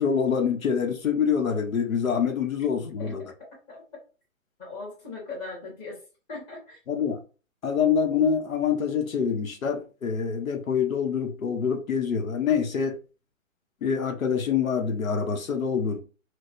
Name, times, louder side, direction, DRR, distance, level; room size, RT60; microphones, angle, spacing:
voice 1, 0.0-3.2 6.9-7.2 7.6-13.0 13.8-16.0, left 6 dB, 85° left, 0.9 m, -25 dB
voice 2, 4.6-6.0 6.3-6.8, left 3 dB, 15° left, 1.2 m, -39 dB
4.5 x 2.2 x 2.5 m
hypercardioid pair, 165°, 40 cm